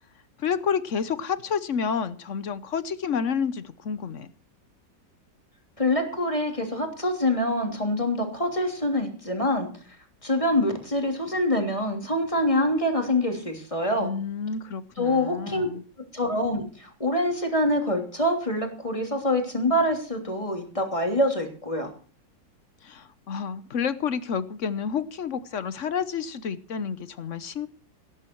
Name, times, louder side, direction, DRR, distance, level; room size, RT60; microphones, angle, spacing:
voice 1, 0.4-4.3 14.0-15.8 22.8-27.7, left 6 dB, 50° left, 15 dB, 1.0 m, -29 dB
voice 2, 5.8-9.7 10.2-14.1 15.0-15.7 16.1-21.9, left 1 dB, 15° left, 3 dB, 3.1 m, -25 dB
18.5 x 10.5 x 4.6 m, 0.40 s
omnidirectional pair, 2.0 m